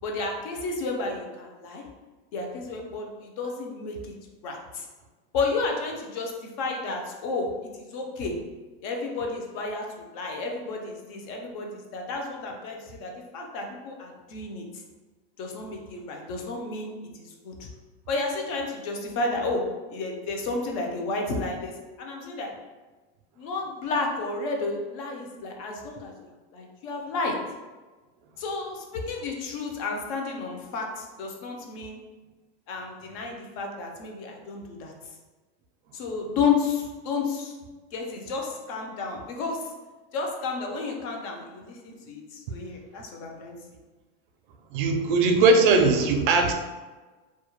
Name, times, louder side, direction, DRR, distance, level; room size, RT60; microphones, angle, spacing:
voice 1, 0.0-1.8 2.3-4.1 4.4-4.9 5.3-8.4 8.8-14.7 15.4-17.7 18.1-19.6 19.9-21.7 22.0-22.5 23.4-27.4 28.4-32.0 32.7-34.9 35.9-37.5 37.9-39.7 40.1-43.6, left 3 dB, 40° left, 1 dB, 0.4 m, -31 dB
voice 2, 44.7-46.5, right 3 dB, 60° right, 4 dB, 0.4 m, -20 dB
2.2 x 2.0 x 2.9 m, 1.3 s
supercardioid pair, 170°, 29 cm